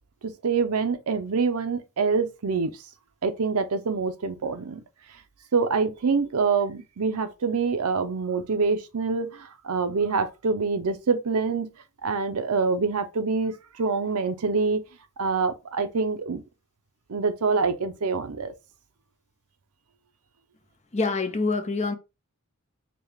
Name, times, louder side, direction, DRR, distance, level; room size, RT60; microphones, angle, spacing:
voice 1, 0.2-2.7 3.2-4.8 5.5-11.7 12.0-14.8 15.2-16.4 17.1-18.5, right 4 dB, 75° right, 0.6 m, -25 dB
voice 2, 20.9-21.9, left 3 dB, 30° left, 0.6 m, -25 dB
5.2 x 2.3 x 3.2 m
head